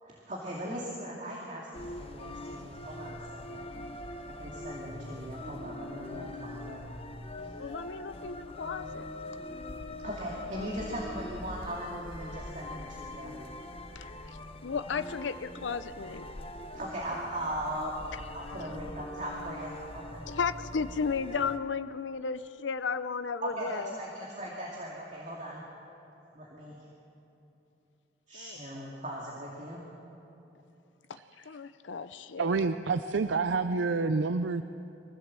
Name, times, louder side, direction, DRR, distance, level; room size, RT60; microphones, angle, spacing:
voice 1, 0.0-3.7 4.3-6.8 7.4-7.5 9.5-13.3 16.7-18.0 18.3-20.2 23.4-25.6 26.3-26.8 28.3-29.8, right 1 dB, 40° right, -4 dB, 2.3 m, -39 dB
sound 1, 1.7-21.6, left 1 dB, 30° left, 0.9 m, -42 dB
voice 2, 7.6-9.1 13.9-16.3 20.3-24.0 28.3-28.6 31.1-32.7, left 5 dB, 80° left, 11 dB, 0.6 m, -34 dB
voice 3, 32.4-34.6, right 4 dB, 75° right, 10 dB, 0.5 m, -28 dB
24.0 x 15.5 x 7.5 m, 2.9 s
head